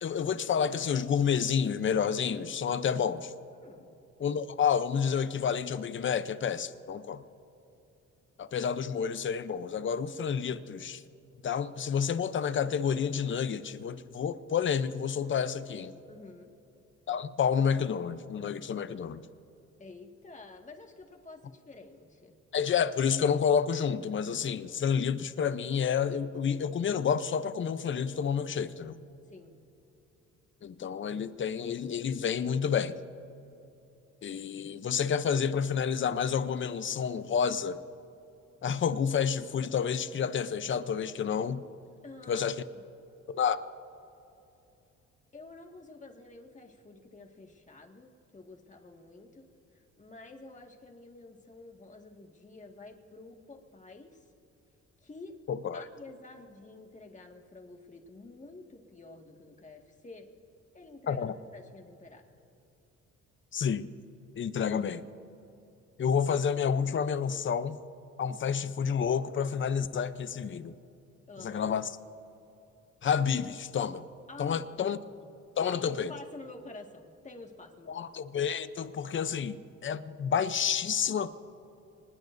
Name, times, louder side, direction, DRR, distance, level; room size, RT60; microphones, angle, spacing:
voice 1, 0.0-3.3 4.2-7.2 8.4-11.0 11.4-15.9 17.1-19.3 22.5-29.0 30.6-33.0 34.2-37.8 38.6-41.6 42.3-42.6 43.3-43.6 55.5-55.8 61.1-61.3 63.5-63.9 64.4-65.0 66.0-67.8 68.2-70.7 71.4-71.9 73.0-74.0 74.4-75.0 75.6-76.1 77.9-79.6 79.8-81.3, left 7 dB, 40° left, 13 dB, 0.7 m, -29 dB
voice 2, 3.5-4.0 16.1-16.5 19.8-22.4 29.3-29.5 42.0-42.8 45.3-54.3 55.0-55.4 55.7-60.3 60.7-62.2 71.3-71.7 74.3-74.9 75.6-78.1, left 3 dB, 25° left, 2 dB, 1.9 m, -49 dB
25.0 x 20.0 x 2.7 m, 2.9 s
cardioid pair, 90°, 30 cm